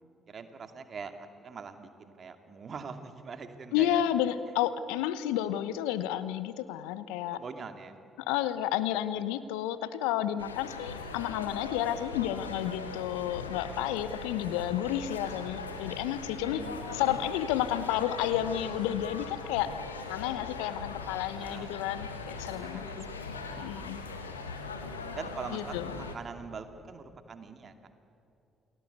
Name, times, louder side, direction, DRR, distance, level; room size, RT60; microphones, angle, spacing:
voice 1, 0.0-4.0 7.3-7.9 16.3-16.8 21.4-21.8 22.5-23.9 25.0-27.9, right 5 dB, 45° right, 7 dB, 2.5 m, -44 dB
voice 2, 3.7-7.4 8.2-16.6 16.9-19.7 20.1-23.1 23.6-24.0 25.5-25.9, left 12 dB, 75° left, 14 dB, 1.0 m, -31 dB
sound 1, 10.4-26.2, left 4 dB, 90° left, 1.6 m, -40 dB
29.0 x 19.5 x 8.2 m, 2.8 s
figure-of-eight pair, 45°, 0 cm